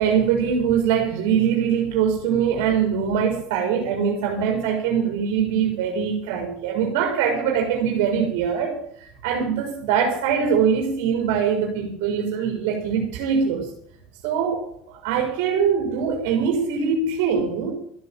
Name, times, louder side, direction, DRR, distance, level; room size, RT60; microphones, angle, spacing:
voice 1, 0.0-13.7 14.2-17.7, right 7 dB, 70° right, 2 dB, 4.3 m, -22 dB
13.5 x 9.6 x 8.8 m, 0.67 s
supercardioid pair, 110°, 0 cm